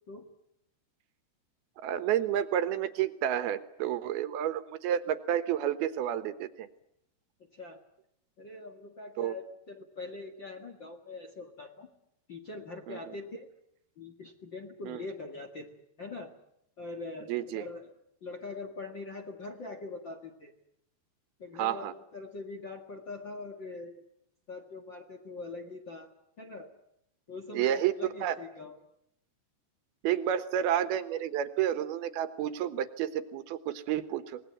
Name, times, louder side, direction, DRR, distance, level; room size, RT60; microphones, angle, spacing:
voice 1, 1.8-6.7 9.2-9.3 12.9-13.1 14.9-15.0 17.3-17.7 21.6-21.9 27.5-27.9 28.2-28.4 30.0-34.4, right 10 dB, 70° right, 11 dB, 2.8 m, -30 dB
voice 2, 7.5-7.8 8.4-11.9 12.3-13.5 14.0-15.7 16.0-16.3 16.8-17.9 18.2-20.5 21.4-24.0 24.5-26.7 27.3-28.8, left 3 dB, 50° left, 4 dB, 1.4 m, -43 dB
25.5 x 20.5 x 9.2 m, 0.77 s
omnidirectional pair, 5.0 m